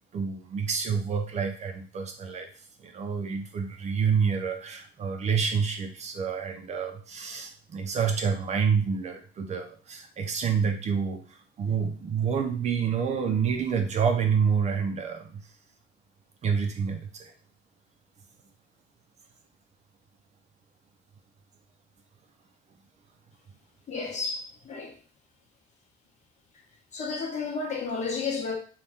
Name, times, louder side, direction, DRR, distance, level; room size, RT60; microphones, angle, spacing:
voice 1, 0.1-2.5 2.8-11.2 11.6-15.4 16.4-17.3, right 6 dB, 40° right, 0.5 m, -28 dB
voice 2, 23.9-25.0 26.9-28.6, left 4 dB, 45° left, 0.9 m, -32 dB
2.7 x 2.3 x 3.4 m
cardioid pair, 110°, 17 cm